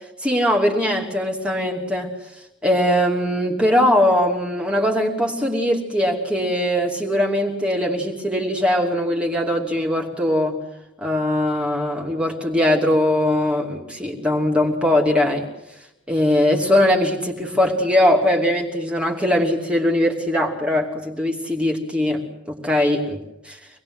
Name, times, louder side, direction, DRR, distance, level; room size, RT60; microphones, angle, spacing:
voice 1, 0.2-2.1 2.6-10.6 11.0-15.5 16.1-22.2 22.5-23.2 23.4-23.6, left 1 dB, 5° right, -1 dB, 2.8 m, -20 dB
25.5 x 20.0 x 8.0 m, 0.89 s
head